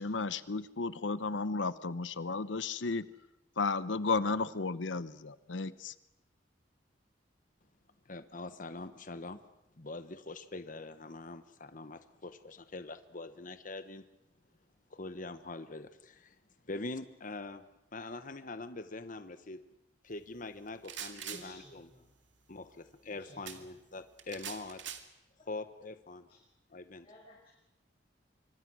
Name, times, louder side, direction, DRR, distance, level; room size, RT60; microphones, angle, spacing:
voice 1, 0.0-3.1 3.6-5.9, left 4 dB, 80° left, 15 dB, 0.8 m, -33 dB
voice 2, 8.0-9.4 9.8-14.0 14.9-16.4 16.6-17.6 17.9-19.6 20.0-21.9 22.5-24.8 25.5-26.3 26.7-27.1, left 2 dB, 45° left, 10 dB, 1.2 m, -43 dB
sound 1, 20.7-21.5 23.5-23.6 24.2-25.0, right 9 dB, 75° right, 2.1 m, -42 dB
voice 3, 21.3-22.1 23.1-23.7 25.4-25.8 26.3-26.4 27.0-27.5, left 1 dB, 30° left, -4 dB, 6.5 m, -56 dB
26.0 x 24.0 x 6.3 m, 0.92 s
head